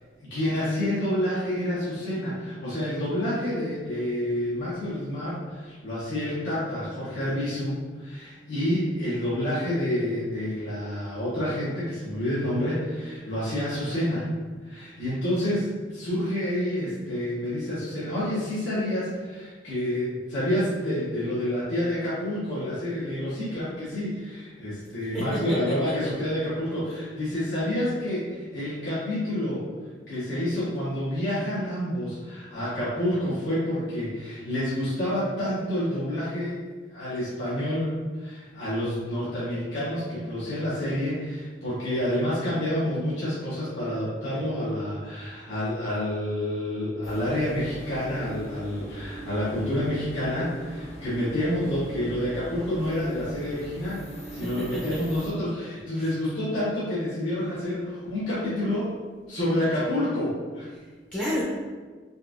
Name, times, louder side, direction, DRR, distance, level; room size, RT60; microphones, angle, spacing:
voice 1, 0.3-14.3 14.6-29.6 30.1-36.6 36.9-54.0 54.3-58.9 59.3-60.7, left 1 dB, 80° left, -11 dB, 1.1 m, -28 dB
voice 2, 25.0-26.1 54.2-55.0 55.9-56.2 60.7-61.4, equal, 5° left, -8 dB, 0.6 m, -33 dB
sound 1, 47.0-55.3, right 1 dB, 35° left, 0.9 m, -41 dB
4.0 x 2.5 x 2.4 m, 1.4 s
head